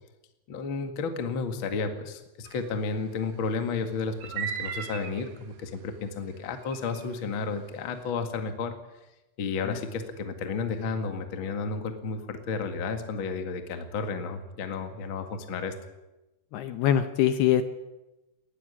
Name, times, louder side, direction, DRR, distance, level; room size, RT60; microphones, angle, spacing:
voice 1, 0.5-8.7 9.4-15.7, left 4 dB, 55° left, 6 dB, 1.4 m, -32 dB
sound 1, 2.4-2.7 4.2-5.3 6.7-7.0, right 7 dB, 70° right, 2.0 m, -36 dB
voice 2, 16.5-17.6, left 10 dB, 75° left, 10 dB, 2.6 m, -23 dB
19.5 x 15.0 x 9.9 m, 1.0 s
omnidirectional pair, 5.4 m